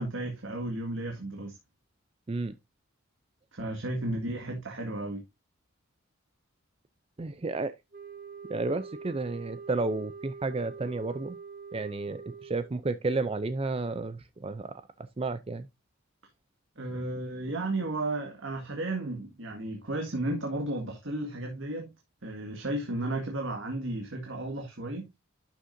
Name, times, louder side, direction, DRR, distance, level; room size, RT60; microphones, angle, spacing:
voice 1, 0.0-1.6 3.5-5.2 16.8-21.9 22.2-25.1, right 2 dB, 60° right, 1.9 m, -33 dB
voice 2, 7.2-7.7 8.5-11.4 11.7-14.7 15.2-15.7, right 3 dB, 25° right, 0.4 m, -32 dB
sound 1, 7.9-12.8, right 5 dB, 45° right, 1.3 m, -44 dB
11.5 x 6.4 x 2.6 m
head